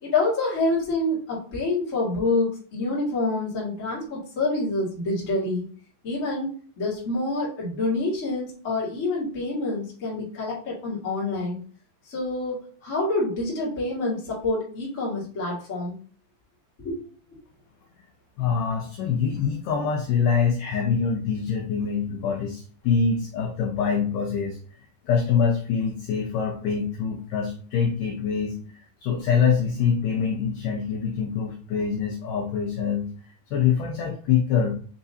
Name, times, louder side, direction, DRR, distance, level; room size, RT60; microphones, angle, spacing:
voice 1, 0.0-5.6 6.0-11.6 12.1-16.0 16.8-17.0, left 2 dB, 35° left, -6 dB, 1.3 m, -27 dB
voice 2, 18.4-33.1 33.5-34.7, left 6 dB, 80° left, 1 dB, 1.9 m, -25 dB
5.9 x 3.1 x 2.7 m, 0.44 s
omnidirectional pair, 4.5 m